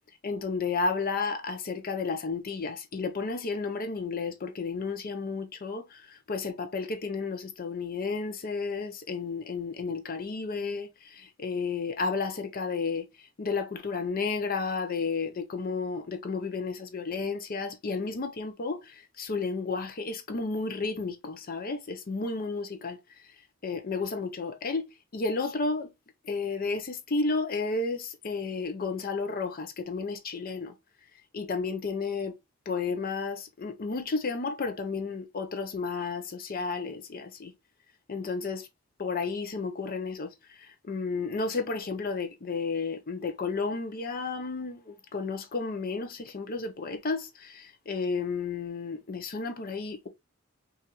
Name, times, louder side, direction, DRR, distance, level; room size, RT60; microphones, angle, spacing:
voice 1, 0.2-13.1 13.4-23.0 23.6-24.9 25.1-25.9 26.2-30.7 31.3-32.4 32.7-37.5 38.1-38.7 39.0-50.1, left 4 dB, 45° left, 0.6 m, -32 dB
5.8 x 2.5 x 2.9 m
head